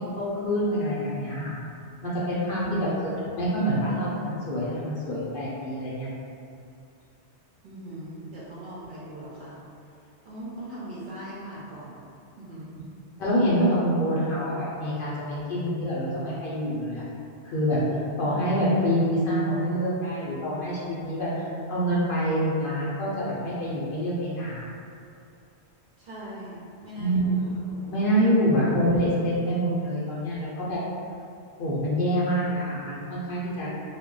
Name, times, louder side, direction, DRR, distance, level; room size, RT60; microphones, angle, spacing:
voice 1, 0.2-1.5 2.0-2.9 3.2-6.1 13.2-17.0 17.4-17.8 18.2-24.7 27.0-27.5 27.9-30.8 31.6-33.7, equal, 60° left, -7 dB, 0.7 m, -26 dB
voice 2, 2.6-3.0 7.6-9.6 10.2-12.0 12.4-12.7 18.2-18.4 24.6-24.7 26.0-27.5 27.7-27.9, right 1 dB, 55° right, -8 dB, 0.7 m, -40 dB
2.2 x 2.1 x 3.7 m, 2.5 s
omnidirectional pair, 1.2 m